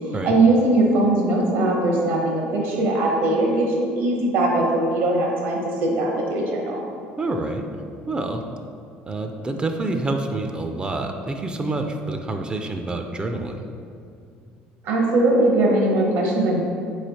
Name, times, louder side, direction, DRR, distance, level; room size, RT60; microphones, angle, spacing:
voice 1, 0.0-6.8 14.8-16.6, right 2 dB, 70° right, -1 dB, 1.0 m, -20 dB
voice 2, 7.2-7.7 8.1-8.5 9.1-13.6, right 2 dB, 25° right, 5 dB, 0.3 m, -27 dB
4.0 x 3.2 x 4.0 m, 2.4 s
supercardioid pair, 95°, 4 cm